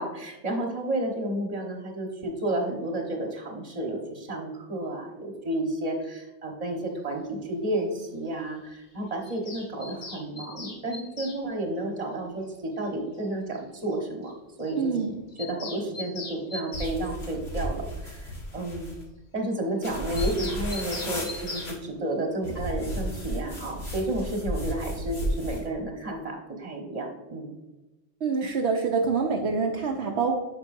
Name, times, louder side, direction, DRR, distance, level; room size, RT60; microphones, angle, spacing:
voice 1, 0.0-14.3 14.6-14.9 15.4-19.0 19.3-27.5, right 1 dB, 35° right, 1 dB, 1.3 m, -31 dB
Bird vocalization bird call bird song, 9.2-11.4 12.8-12.9 13.2-13.3 13.5-13.6 13.9-14.0 14.2-14.3 14.6-14.7 15.0-17.0 20.2-21.7, left 3 dB, 45° left, 1.1 m, -39 dB
voice 2, 14.8-15.1 28.2-30.3, right 5 dB, 70° right, 1 dB, 0.9 m, -26 dB
sound 1, 16.7-19.0 19.8-21.7 22.4-25.7, equal, 60° left, 2.0 m, -33 dB
8.5 x 6.0 x 2.6 m, 1.1 s
omnidirectional pair, 1.2 m